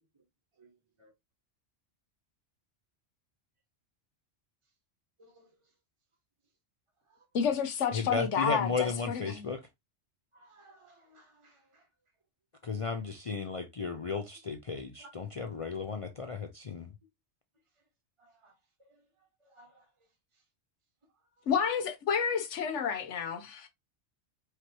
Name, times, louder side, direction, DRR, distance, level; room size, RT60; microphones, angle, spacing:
voice 1, 5.2-5.5 7.1-7.2 10.3-11.8 15.0-15.3 18.2-18.5 18.8-19.0 19.5-19.9 21.4-21.5, right 2 dB, 25° right, 1.3 m, -59 dB
voice 2, 7.3-9.5 21.5-23.7, left 6 dB, 90° left, 1.2 m, -30 dB
voice 3, 7.9-9.6 12.6-16.9, left 4 dB, 45° left, 0.4 m, -34 dB
4.9 x 3.0 x 2.9 m
omnidirectional pair, 1.2 m